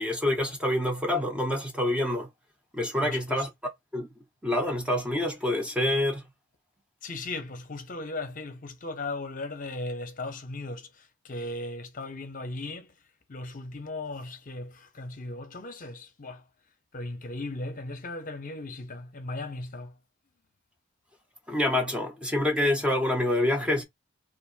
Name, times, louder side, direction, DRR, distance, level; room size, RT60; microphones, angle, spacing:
voice 1, 0.0-2.3 2.7-3.5 3.9-4.1 4.4-6.2 21.5-23.8, left 1 dB, 5° right, 0.7 m, -26 dB
voice 2, 3.0-3.4 7.0-12.9 13.3-16.4 16.9-20.0, left 2 dB, 40° left, 0.8 m, -37 dB
4.2 x 2.5 x 2.4 m
head